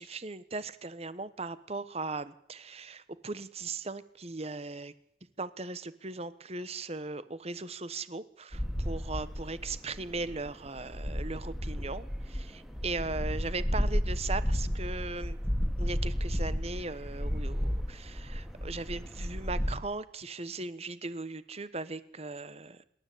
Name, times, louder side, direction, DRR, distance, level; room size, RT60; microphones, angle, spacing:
voice 1, 0.0-4.9 5.4-15.4 15.8-22.8, right 3 dB, 35° right, 16 dB, 1.2 m, -38 dB
sound 1, 8.5-19.8, equal, ahead, 2.3 m, -33 dB
27.0 x 13.0 x 8.5 m, 0.71 s
head